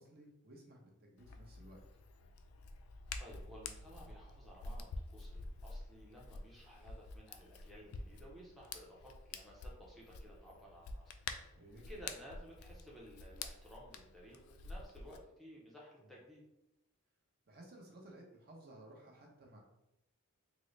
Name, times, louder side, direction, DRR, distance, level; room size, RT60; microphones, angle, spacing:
voice 1, 0.0-1.8 11.6-11.8 16.0-16.2 17.5-19.6, right 1 dB, 45° right, -1 dB, 0.7 m, -57 dB
Hands, 1.2-15.2, left 3 dB, 75° left, 0.3 m, -49 dB
voice 2, 3.2-11.1 11.9-16.4, equal, ahead, -5 dB, 0.5 m, -55 dB
3.7 x 2.0 x 3.1 m, 0.90 s
head